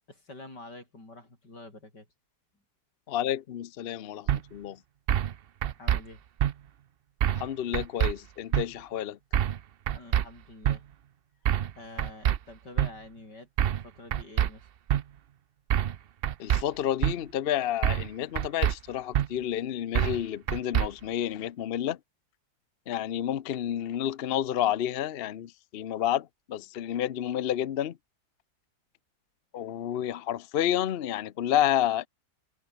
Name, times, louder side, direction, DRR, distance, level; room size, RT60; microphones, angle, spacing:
voice 1, 0.1-2.1 5.8-6.2 9.9-10.8 11.4-14.7, left 2 dB, 90° left, 8.0 m, -47 dB
voice 2, 3.1-4.8 7.3-9.2 16.4-22.0 22.9-28.0 29.5-32.1, left 11 dB, 55° left, 0.7 m, -30 dB
sound 1, 4.3-4.4 5.1-5.3 5.6-6.0 6.4-6.5 7.2-7.5 7.7-8.1 8.5-8.6 9.3-9.6 9.9-10.2 10.6-10.8 11.5-11.7 12.0-12.4 12.8-12.9 13.6-13.8 14.1-14.5 14.9-15.0 15.7-16.0 16.2-16.6 17.0-17.1 17.8-18.1 18.4-18.7 19.1-19.3 19.9-20.2 20.5-20.9, right 10 dB, 80° right, 0.5 m, -25 dB
omnidirectional pair, 1.8 m